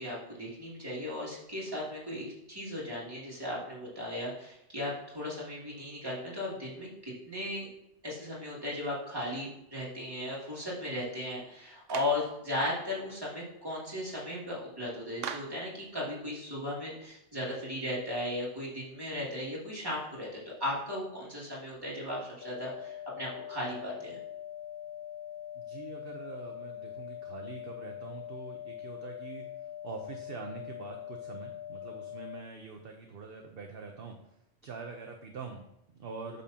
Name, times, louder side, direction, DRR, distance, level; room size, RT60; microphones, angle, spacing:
voice 1, 0.0-7.7 8.0-24.2, left 1 dB, 20° right, -6 dB, 2.6 m, -36 dB
Clapping, 11.9-12.3 15.2-15.7, right 8 dB, 80° right, 1.0 m, -39 dB
sound 1, 22.4-32.4, left 11 dB, 60° left, 0.6 m, -43 dB
voice 2, 25.5-29.5 29.8-34.2 34.6-36.4, right 5 dB, 55° right, 3 dB, 0.9 m, -44 dB
8.6 x 6.9 x 2.9 m, 0.81 s
omnidirectional pair, 1.3 m